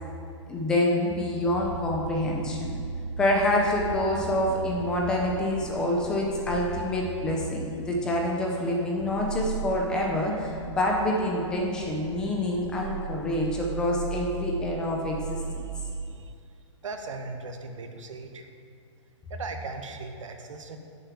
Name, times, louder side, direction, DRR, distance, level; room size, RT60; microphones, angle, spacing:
voice 1, 0.0-2.8 3.2-15.6, left 1 dB, 5° left, -1 dB, 0.4 m, -27 dB
sound 1, 1.6-16.3, right 6 dB, 60° right, 0.5 m, -37 dB
voice 2, 16.8-18.5 19.3-20.8, right 3 dB, 85° right, 5 dB, 1.5 m, -38 dB
10.5 x 6.8 x 7.2 m, 2.4 s
hypercardioid pair, 180°, 16 cm